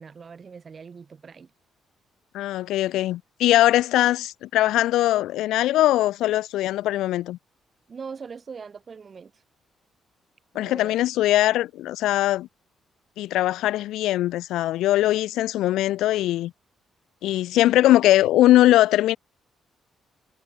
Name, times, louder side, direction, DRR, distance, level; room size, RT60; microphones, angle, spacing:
voice 1, 0.0-1.5 7.9-9.4 10.5-10.9, right 5 dB, 40° right, 3.9 m, -41 dB
voice 2, 2.3-7.4 10.5-12.5 13.2-16.5 17.2-19.2, left 14 dB, 85° left, 0.6 m, -21 dB
cardioid pair, 90°, 0 cm